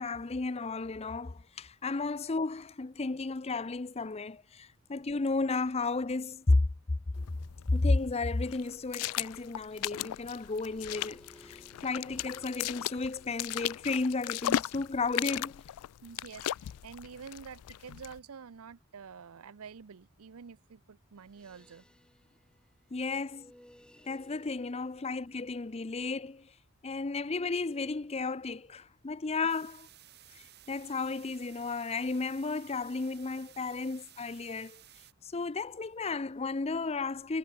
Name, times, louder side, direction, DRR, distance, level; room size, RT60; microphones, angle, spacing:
voice 1, 0.0-6.6 7.7-15.6 22.9-23.5 24.1-26.5 26.8-29.9 30.7-34.8 35.2-37.4, left 3 dB, 25° left, 0.5 m, -33 dB
sound 1, 7.1-18.2, left 12 dB, 85° left, 0.3 m, -37 dB
sound 2, 9.9-15.5 21.2-25.9 27.5-27.9, equal, 5° left, 5.1 m, -60 dB
voice 2, 16.0-16.5 16.8-21.8, right 6 dB, 70° right, 0.6 m, -48 dB
sound 3, 29.5-35.1, right 12 dB, 45° right, 5.0 m, -56 dB
head